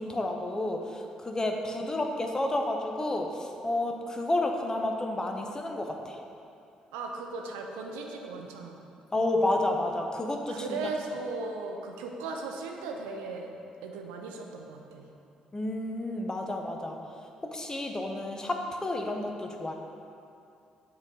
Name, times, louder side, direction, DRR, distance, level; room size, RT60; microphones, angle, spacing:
voice 1, 0.0-6.2 9.1-10.8 15.5-17.0 17.5-19.7, left 1 dB, 20° left, 3 dB, 0.8 m, -30 dB
voice 2, 1.8-2.2 6.9-8.9 10.5-13.5 13.8-15.1, right 3 dB, 75° right, 2 dB, 0.5 m, -37 dB
7.5 x 3.9 x 4.8 m, 2.6 s
hypercardioid pair, 45°, 3 cm